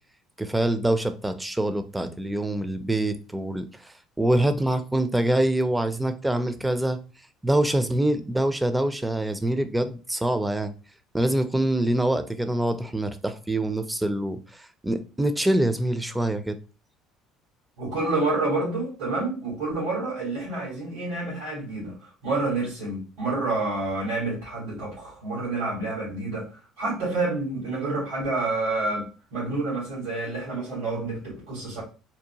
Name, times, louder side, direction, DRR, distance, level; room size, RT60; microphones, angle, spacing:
voice 1, 0.4-7.0 7.4-10.7 11.1-16.6, right 1 dB, 10° right, 0.4 m, -25 dB
voice 2, 17.8-31.8, right 2 dB, 90° right, 1.5 m, -28 dB
2.7 x 2.1 x 2.8 m
cardioid pair, 105°, 0 cm